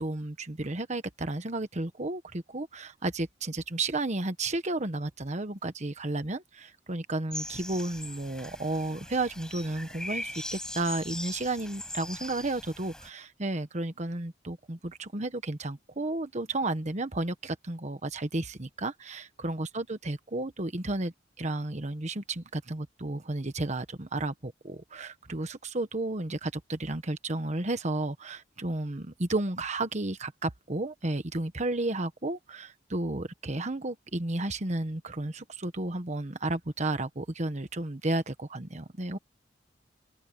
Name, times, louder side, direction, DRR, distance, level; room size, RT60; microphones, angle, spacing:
voice 1, 0.0-39.2, right 2 dB, 40° right, 1.3 m, -32 dB
sound 1, 7.3-13.1, left 1 dB, 5° left, 7.6 m, -40 dB
open air
head